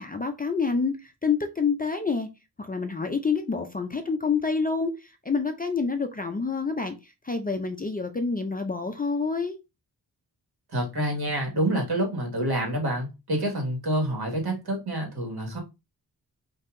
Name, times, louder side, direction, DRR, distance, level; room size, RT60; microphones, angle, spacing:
voice 1, 0.0-2.3 2.6-9.6, left 4 dB, 25° left, 0.4 m, -28 dB
voice 2, 10.7-15.6, right 1 dB, 70° right, 1.8 m, -27 dB
5.5 x 2.7 x 2.5 m
wide cardioid pair, 165°, 40 cm